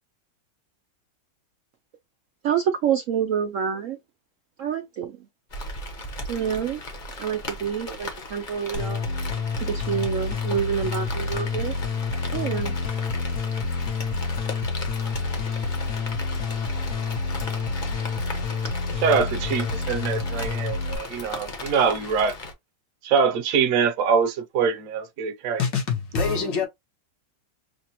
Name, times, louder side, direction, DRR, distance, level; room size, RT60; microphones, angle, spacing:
voice 1, 2.4-4.0 4.6-5.2 6.3-6.8 7.2-9.1 9.6-11.7 12.3-12.8, right 8 dB, 85° right, 0.7 m, -27 dB
Rain, 5.5-22.5, left 2 dB, 40° left, 0.8 m, -37 dB
sound 1, 8.7-21.0, left 4 dB, 60° left, 1.1 m, -28 dB
voice 2, 19.0-22.3 23.0-25.6, right 6 dB, 60° right, 1.0 m, -24 dB
voice 3, 25.6-26.7, left 5 dB, 75° left, 1.8 m, -24 dB
5.8 x 2.1 x 2.9 m
omnidirectional pair, 1.9 m